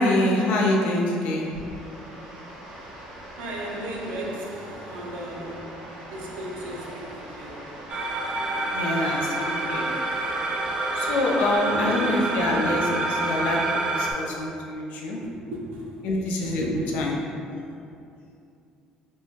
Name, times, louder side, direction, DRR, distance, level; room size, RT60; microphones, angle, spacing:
voice 1, 0.0-1.5 8.7-9.9 11.0-15.2 16.0-16.6 16.9-17.2, left 1 dB, 75° left, 0.6 m, -25 dB
sound 1, 1.1-11.6, right 1 dB, 75° right, 1.4 m, -42 dB
voice 2, 3.4-7.9 11.7-12.3 15.2-16.1 16.4-17.2, right 1 dB, 90° right, 0.5 m, -35 dB
sound 2, 7.9-14.1, right 2 dB, 35° right, 0.4 m, -27 dB
4.5 x 2.2 x 2.8 m
cardioid pair, 115°, 3 cm